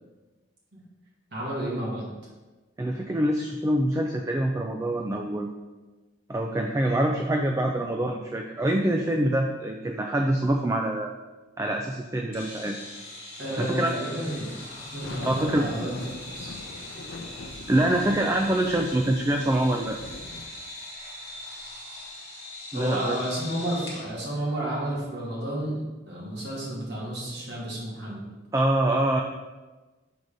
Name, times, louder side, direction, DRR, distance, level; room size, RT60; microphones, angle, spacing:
voice 1, 1.3-2.0 13.4-16.1 16.3-16.6 22.7-28.3, right 1 dB, 60° right, -5 dB, 2.1 m, -31 dB
voice 2, 2.8-5.5 6.3-11.1 11.6-12.7 13.6-13.9 15.3-15.7 17.7-20.0 22.7-23.2 28.5-29.2, right 1 dB, 15° right, 2 dB, 0.3 m, -25 dB
sound 1, 12.3-24.1, left 2 dB, 30° left, 1.9 m, -41 dB
sound 2, 14.2-20.5, left 2 dB, 75° left, 0.5 m, -41 dB
6.2 x 3.9 x 5.1 m, 1.2 s
head